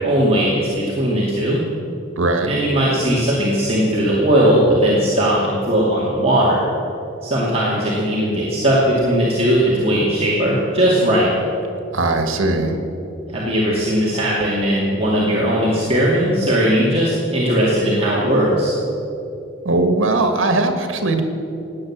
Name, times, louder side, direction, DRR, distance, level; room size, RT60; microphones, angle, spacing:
voice 1, 0.0-1.6 2.4-6.6 7.2-11.3 13.3-18.7, equal, 30° right, -7 dB, 2.4 m, -18 dB
voice 2, 2.2-2.5 11.9-12.8 19.7-21.2, right 2 dB, 80° right, 6 dB, 1.7 m, -19 dB
17.5 x 9.7 x 7.4 m, 2.9 s
head